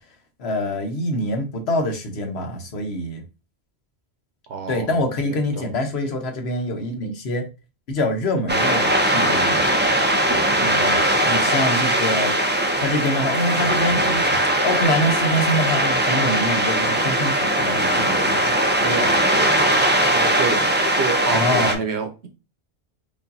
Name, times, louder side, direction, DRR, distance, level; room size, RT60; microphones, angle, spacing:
voice 1, 0.4-3.2 4.7-7.4 7.9-9.7 10.6-12.3 12.8-18.5 21.3-21.8, left 1 dB, 75° left, 1.2 m, -25 dB
voice 2, 4.5-4.9 5.3-5.6 10.3-10.6 18.8-22.3, right 5 dB, 75° right, 1.0 m, -29 dB
sound 1, 8.5-21.7, right 1 dB, 15° right, 0.4 m, -20 dB
5.0 x 2.6 x 2.6 m
omnidirectional pair, 1.1 m